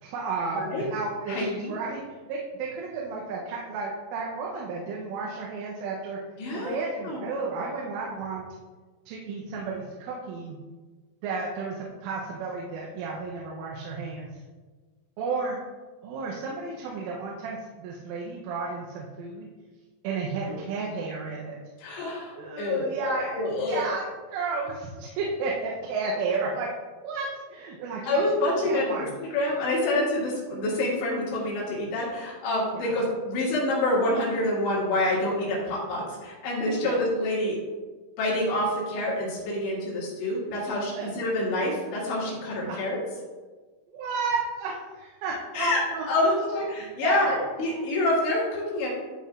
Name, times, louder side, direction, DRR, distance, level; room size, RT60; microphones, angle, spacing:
voice 1, 0.0-6.2 6.5-8.5 9.1-10.6 11.2-14.3 15.2-15.6 16.0-19.5 20.0-21.6 22.4-23.4 23.7-24.1 24.3-26.7 27.0-29.1 32.7-32.9 36.8-37.0 41.0-41.1 42.7-42.8 43.9-46.4 46.8-47.5 47.8-47.9, right 4 dB, 85° right, -3 dB, 3.3 m, -32 dB
voice 2, 0.6-0.9 1.3-1.7 6.4-6.8 7.0-7.2 20.5-20.6 21.8-23.9 28.1-37.6 38.2-43.0 45.5-45.8 46.1-48.9, left 1 dB, 65° left, -5 dB, 3.8 m, -27 dB
13.5 x 4.7 x 2.4 m, 1.4 s
omnidirectional pair, 5.6 m